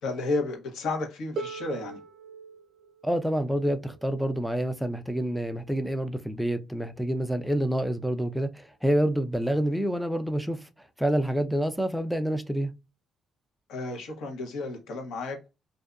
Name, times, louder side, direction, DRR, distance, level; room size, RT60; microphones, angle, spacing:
voice 1, 0.0-2.0 13.7-15.5, left 3 dB, 80° left, 1.1 m, -32 dB
Harp, 1.4-7.1 8.2-8.3, right 4 dB, 60° right, 0.6 m, -43 dB
voice 2, 3.0-12.7, right 1 dB, ahead, 0.4 m, -28 dB
2.6 x 2.2 x 2.4 m
cardioid pair, 90°, 0 cm